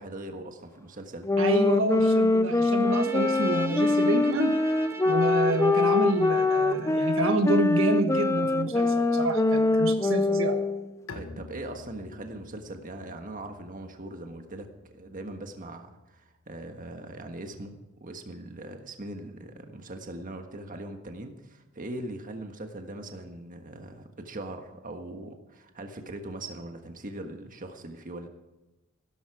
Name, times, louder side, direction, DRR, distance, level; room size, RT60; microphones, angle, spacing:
voice 1, 0.0-1.3 11.1-28.3, right 1 dB, 40° right, 5 dB, 1.5 m, -40 dB
sound 1, 1.2-10.9, left 2 dB, 15° left, 0.5 m, -24 dB
voice 2, 1.4-4.5 5.0-10.6, right 2 dB, 70° right, 6 dB, 1.4 m, -28 dB
Trumpet, 2.8-7.3, right 3 dB, 15° right, 1.6 m, -41 dB
Bowed string instrument, 11.1-16.7, left 3 dB, 75° left, 1.6 m, -49 dB
16.0 x 13.0 x 4.9 m, 1.0 s
head